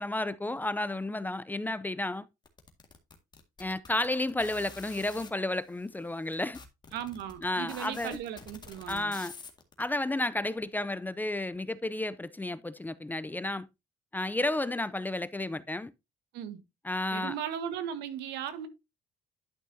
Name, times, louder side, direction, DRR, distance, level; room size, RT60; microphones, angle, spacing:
voice 1, 0.0-2.3 3.6-6.6 7.4-8.2 8.9-9.3 9.8-13.7 14.1-15.9 16.8-17.3, left 2 dB, 10° left, 0.5 m, -32 dB
sound 1, 2.5-5.3 6.0-6.1 6.3-9.8, left 4 dB, 25° left, 1.9 m, -48 dB
voice 2, 6.9-9.2 16.3-16.6 17.1-18.7, right 9 dB, 85° right, 1.6 m, -37 dB
11.5 x 6.0 x 2.7 m
cardioid pair, 110°, 17 cm